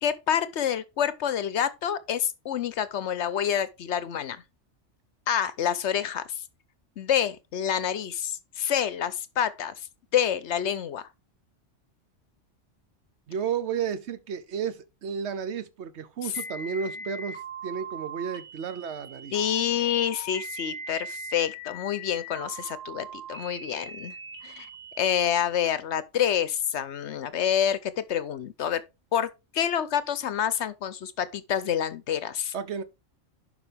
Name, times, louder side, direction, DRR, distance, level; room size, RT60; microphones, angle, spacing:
voice 1, 0.0-4.4 5.3-6.4 7.0-9.9 10.1-11.1 16.2-16.3 19.3-24.2 24.4-24.7 25.0-28.8 29.1-32.5, left 9 dB, 70° left, 1.0 m, -28 dB
voice 2, 13.3-19.3 32.5-32.8, right 7 dB, 70° right, 1.2 m, -32 dB
sound 1, 16.3-25.4, right 1 dB, 10° right, 3.7 m, -40 dB
11.0 x 5.0 x 3.4 m
omnidirectional pair, 1.2 m